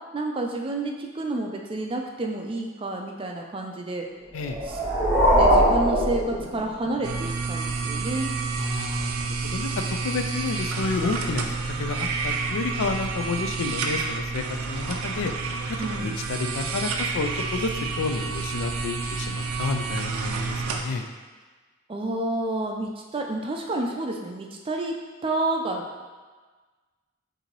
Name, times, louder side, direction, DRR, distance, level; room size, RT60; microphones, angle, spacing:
voice 1, 0.1-4.1 4.7-4.8 5.4-8.3 15.8-16.2 21.9-25.0 25.2-26.1, right 2 dB, 25° right, 1 dB, 0.4 m, -30 dB
sound 1, 4.4-7.0, equal, 5° right, 1.0 m, -21 dB
sound 2, 7.0-20.8, right 4 dB, 90° right, 0.5 m, -29 dB
voice 2, 8.6-9.7 10.0-11.4 11.8-15.3 16.0-17.7 18.0-21.0, left 4 dB, 70° left, 6 dB, 0.4 m, -30 dB
6.6 x 2.7 x 3.0 m, 1.4 s
head